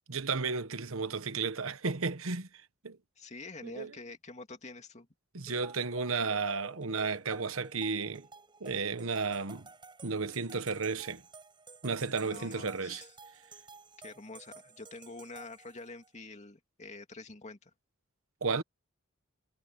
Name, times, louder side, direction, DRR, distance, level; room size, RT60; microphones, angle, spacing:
voice 1, 0.1-2.5 2.8-3.0 3.6-3.9 5.3-8.3 8.6-9.7 10.0-11.2 11.8-13.0 18.4-18.6, right 4 dB, 70° right, 1.2 m, -33 dB
voice 2, 3.2-5.1 12.2-13.1 14.0-17.7, left 3 dB, 30° left, 2.5 m, -47 dB
sound 1, 5.5-16.1, right 3 dB, 20° right, 7.7 m, -53 dB
head